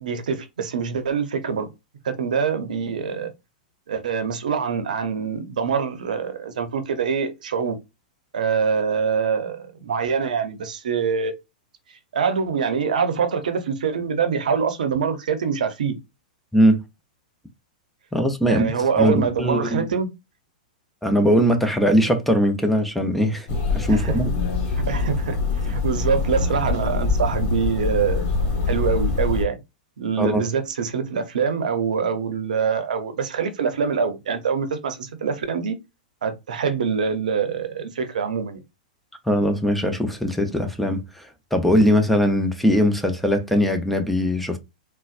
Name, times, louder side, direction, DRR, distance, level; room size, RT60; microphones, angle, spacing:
voice 1, 0.0-1.7 2.0-3.3 3.9-7.8 8.3-11.3 12.1-16.0 18.4-20.1 23.9-24.2 24.9-25.4 25.6-28.2 28.7-29.6 30.0-35.8 36.2-38.6, right 6 dB, 70° right, 0.7 m, -24 dB
voice 2, 18.1-18.6 19.0-19.9 21.0-24.3 30.2-30.4 39.3-44.6, equal, 5° left, 0.6 m, -20 dB
sound 1, 23.5-29.4, left 4 dB, 35° left, 1.7 m, -24 dB
3.9 x 2.2 x 2.5 m
hypercardioid pair, 110°, 4 cm